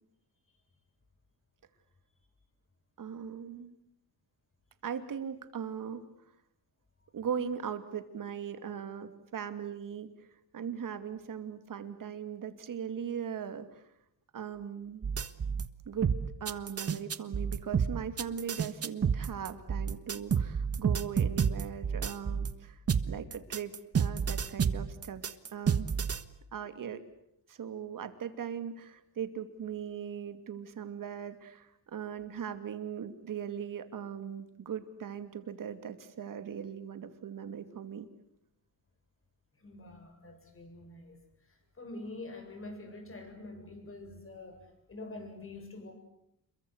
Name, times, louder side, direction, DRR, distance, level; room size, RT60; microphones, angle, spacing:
voice 1, 3.0-3.8 4.8-6.0 7.1-10.3 10.5-13.8 14.3-15.1 15.9-16.1 16.4-22.8 23.1-25.9 26.5-27.0 27.5-38.1, right 8 dB, 60° right, 9 dB, 2.7 m, -39 dB
sound 1, 15.0-15.7 16.0-22.5 22.9-26.2, right 6 dB, 40° right, 1.4 m, -30 dB
voice 2, 39.6-45.9, left 2 dB, 35° left, 6 dB, 7.4 m, -46 dB
28.0 x 23.0 x 8.1 m, 0.78 s
cardioid pair, 110°, 36 cm